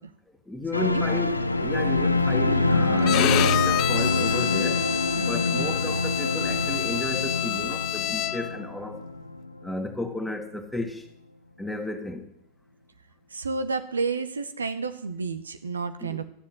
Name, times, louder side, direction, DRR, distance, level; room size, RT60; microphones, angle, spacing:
voice 1, 0.5-4.9 5.1-9.0 9.6-11.0 11.6-12.3 16.0-16.2, left 2 dB, 5° left, 1.9 m, -33 dB
sound 1, 0.7-9.9 10.1-10.3, left 2 dB, 90° left, 0.6 m, -25 dB
Bowed string instrument, 3.0-8.6, left 15 dB, 45° left, 0.4 m, -28 dB
voice 2, 5.3-5.7 13.3-16.2, right 4 dB, 80° right, 0.8 m, -31 dB
13.0 x 7.5 x 7.5 m
figure-of-eight pair, 85°, 0 cm